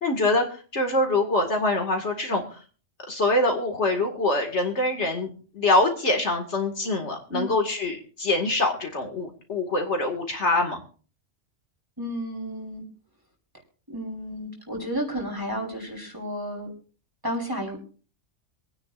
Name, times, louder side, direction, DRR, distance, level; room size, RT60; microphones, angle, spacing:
voice 1, 0.0-2.6 3.1-10.8, left 2 dB, 65° left, 3 dB, 2.4 m, -24 dB
voice 2, 7.3-7.6 12.0-12.8 13.9-16.7 17.2-17.8, equal, 15° right, 0 dB, 3.7 m, -32 dB
26.5 x 9.7 x 2.6 m, 0.38 s
omnidirectional pair, 1.3 m